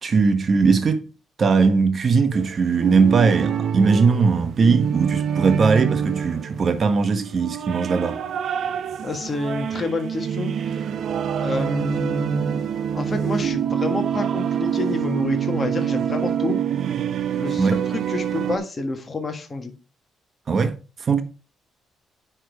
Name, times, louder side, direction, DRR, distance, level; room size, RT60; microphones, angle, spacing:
voice 1, 0.0-1.0 1.4-8.2 17.6-17.8 20.5-20.8 21.1-21.2, right 4 dB, 45° right, 1.2 m, -19 dB
sound 1, 2.3-18.6, right 8 dB, 65° right, 0.5 m, -26 dB
voice 2, 9.0-10.7 11.4-12.6 12.9-16.6 17.4-19.7, left 3 dB, 30° left, 1.7 m, -28 dB
9.7 x 3.7 x 4.7 m
cardioid pair, 90°, 0 cm